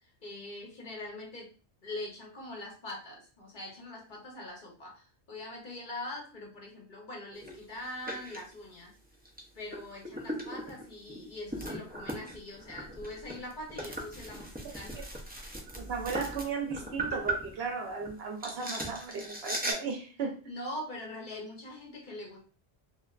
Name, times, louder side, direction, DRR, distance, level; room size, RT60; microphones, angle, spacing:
voice 1, 0.2-1.5 1.8-8.9 9.5-15.0 20.5-22.4, left 1 dB, 50° left, 0.9 m, -42 dB
sound 1, 7.3-7.6 8.1-8.4 9.3-9.4 9.7-18.1 18.4-19.7, right 1 dB, 15° right, 0.4 m, -38 dB
voice 2, 15.8-20.3, right 5 dB, 70° right, 0.9 m, -35 dB
3.2 x 2.5 x 2.4 m
omnidirectional pair, 1.1 m